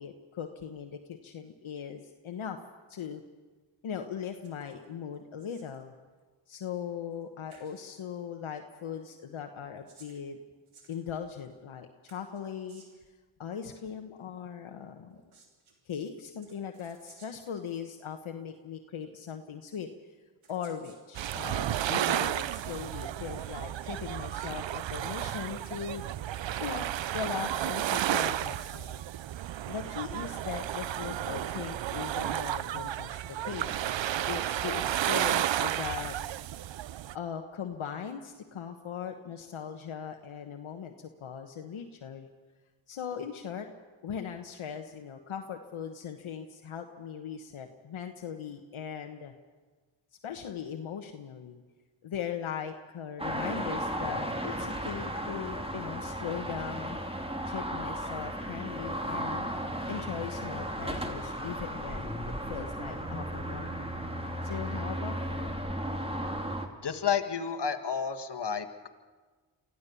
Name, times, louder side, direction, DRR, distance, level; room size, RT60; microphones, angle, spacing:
voice 1, 0.0-2.6 2.9-3.2 3.8-5.9 6.5-10.4 10.9-12.8 13.4-15.2 15.8-19.9 20.5-26.0 26.6-26.9 27.1-29.0 29.7-33.9 34.3-36.1 37.1-42.3 42.9-43.7 44.0-49.3 50.2-51.6 52.0-57.0 57.4-59.5 59.9-62.1 62.5-63.9 64.4-65.5, left 8 dB, 75° left, 5 dB, 1.2 m, -39 dB
sound 1, 4.4-4.9 5.1-5.8 7.1-7.2 7.5-7.8 9.5-11.5 12.1-13.1 15.1-15.8 16.4-17.6 18.6-18.7 19.7-19.8 20.4-21.0 21.5-22.0 22.5-22.9, right 4 dB, 85° right, 3.1 m, -60 dB
sound 2, 21.1-37.2, right 12 dB, 65° right, 0.6 m, -32 dB
sound 3, 53.2-66.7, right 1 dB, 10° right, 2.6 m, -35 dB
voice 2, 66.8-68.9, left 7 dB, 55° left, 7 dB, 1.7 m, -31 dB
24.5 x 15.0 x 6.9 m, 1.4 s
cardioid pair, 40°, 48 cm